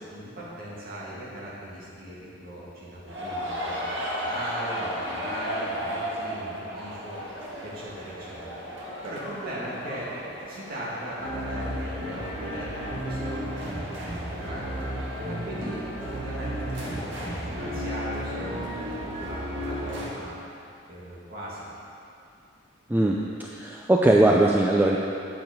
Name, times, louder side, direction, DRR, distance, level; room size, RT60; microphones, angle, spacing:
voice 1, 0.0-7.2 7.6-8.6 9.0-10.1 10.5-14.9 15.3-20.4 20.9-21.7, equal, 45° right, -7 dB, 2.1 m, -38 dB
sound 1, 3.1-20.1, equal, 60° right, 1.5 m, -33 dB
voice 2, 22.9-25.0, right 1 dB, 10° right, -2 dB, 0.3 m, -20 dB
8.9 x 6.0 x 5.3 m, 2.6 s
head